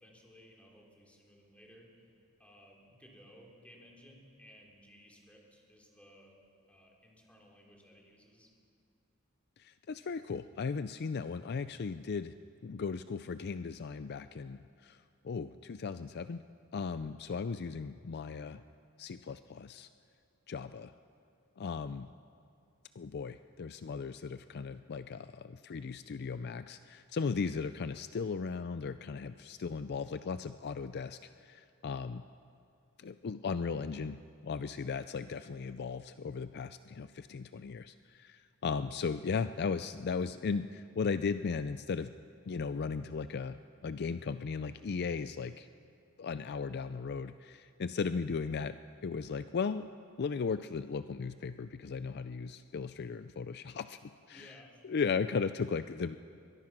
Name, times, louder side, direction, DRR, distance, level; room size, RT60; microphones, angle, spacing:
voice 1, 0.0-1.9 2.4-6.4 6.7-8.5 54.3-54.8, equal, 5° left, -2 dB, 3.7 m, -58 dB
voice 2, 9.6-12.3 12.6-16.4 16.7-18.6 19.0-19.9 20.5-20.9 21.6-22.1 23.0-32.2 33.0-42.1 42.5-43.6 43.8-45.7 46.2-48.8 49.0-49.9 50.2-54.5 54.8-56.2, left 5 dB, 50° left, 12 dB, 0.4 m, -36 dB
22.5 x 21.5 x 6.1 m, 2.5 s
head